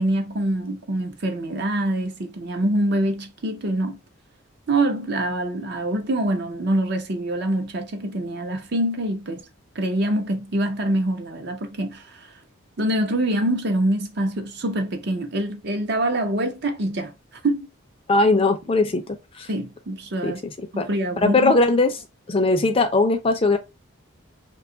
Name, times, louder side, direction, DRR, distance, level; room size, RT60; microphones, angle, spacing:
voice 1, 0.0-4.0 4.7-9.4 9.8-12.3 12.8-17.1 17.4-17.7 19.5-20.4 20.7-21.5, right 1 dB, 50° right, 0.6 m, -25 dB
voice 2, 18.1-19.0 19.4-19.5 20.2-20.3 20.8-20.9 21.2-21.9 22.3-23.6, left 2 dB, 25° left, 0.4 m, -19 dB
2.8 x 2.3 x 3.7 m
head